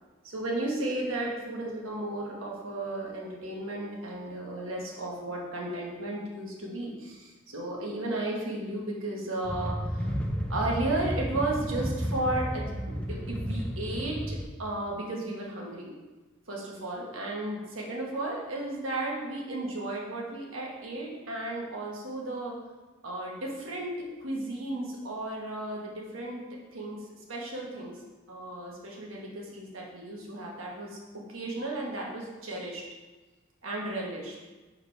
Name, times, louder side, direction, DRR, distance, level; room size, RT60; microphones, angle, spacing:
voice 1, 0.2-10.0 10.5-15.9 16.5-22.5 23.0-26.4 26.7-27.9 28.3-31.0 31.3-32.9 33.6-34.4, right 2 dB, 75° right, -2 dB, 1.3 m, -34 dB
sound 1, 9.4-14.5, equal, 5° left, 0.5 m, -32 dB
6.0 x 4.9 x 3.4 m, 1.2 s
head